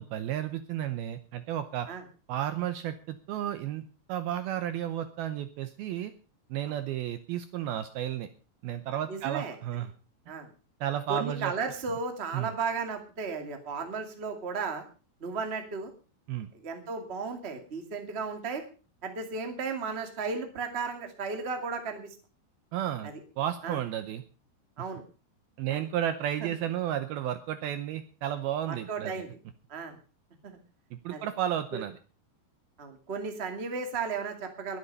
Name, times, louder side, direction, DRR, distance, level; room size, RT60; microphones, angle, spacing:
voice 1, 0.0-1.9 2.3-6.1 6.5-8.3 8.6-9.9 10.8-11.5 12.3-12.5 16.3-16.5 22.7-23.1 23.4-24.2 25.6-29.3 30.9-32.0, right 11 dB, 75° right, 10 dB, 2.4 m, -32 dB
voice 2, 9.1-9.5 10.3-10.5 11.1-14.8 15.2-15.9 16.6-18.6 19.0-22.1 23.6-23.8 24.8-25.0 25.7-25.8 26.4-26.5 28.7-29.3 29.7-30.0 30.4-30.6 31.1-31.3 32.8-34.8, right 4 dB, 25° right, 5 dB, 1.3 m, -34 dB
21.5 x 8.5 x 5.4 m, 0.36 s
omnidirectional pair, 5.1 m